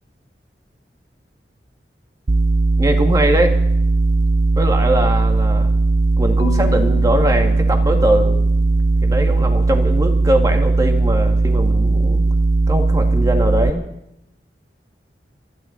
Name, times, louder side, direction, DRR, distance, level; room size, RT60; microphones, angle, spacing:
sound 1, 2.3-13.7, right 3 dB, 45° right, 0.6 m, -17 dB
voice 1, 2.8-3.6 4.6-5.7 6.2-8.4 9.0-12.2 12.7-13.8, right 1 dB, 20° right, 3 dB, 2.1 m, -21 dB
Marimba xylophone / Wood, 6.4-8.6, left 4 dB, 85° left, 1.5 m, -32 dB
25.5 x 11.5 x 4.0 m, 0.84 s
head